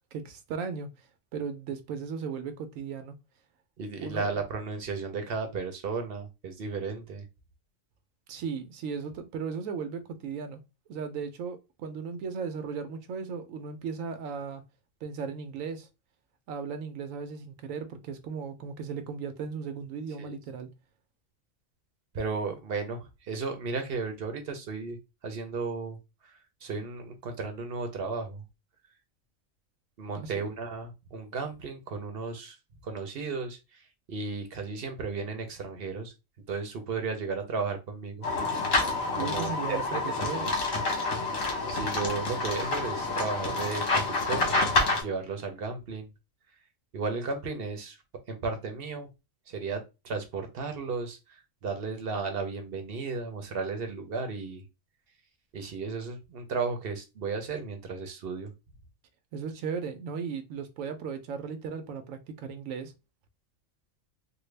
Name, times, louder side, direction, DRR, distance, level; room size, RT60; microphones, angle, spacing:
voice 1, 0.1-3.2 4.0-4.3 8.3-10.6 10.9-14.6 15.0-15.9 16.5-20.7 30.1-30.4 39.1-40.5 59.3-62.9, right 6 dB, 85° right, 1.0 m, -36 dB
voice 2, 3.8-7.2 20.2-20.4 22.1-25.0 25.2-26.0 26.2-26.3 26.6-28.4 30.0-32.6 32.8-33.8 34.1-36.1 36.5-38.3 39.2-40.0 40.3-40.5 41.7-46.1 46.9-48.0 48.3-49.1 49.5-51.2 51.6-54.6 55.5-58.5, right 4 dB, 55° right, 0.8 m, -34 dB
sound 1, 38.2-45.0, left 3 dB, 80° left, 1.5 m, -28 dB
3.5 x 2.2 x 3.2 m
omnidirectional pair, 1.3 m